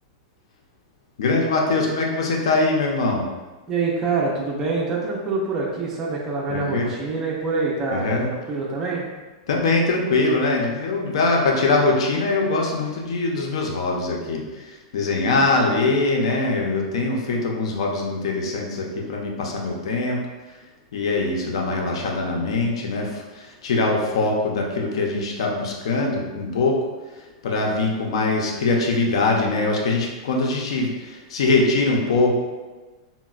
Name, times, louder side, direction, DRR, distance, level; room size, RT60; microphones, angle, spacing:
voice 1, 1.2-3.2 6.5-6.9 7.9-8.2 9.5-20.2 20.9-26.8 27.4-32.3, left 3 dB, 75° left, 0 dB, 0.5 m, -22 dB
voice 2, 3.7-9.1, right 3 dB, 15° right, -4 dB, 0.4 m, -25 dB
3.9 x 2.0 x 2.3 m, 1.2 s
supercardioid pair, 170°, 3 cm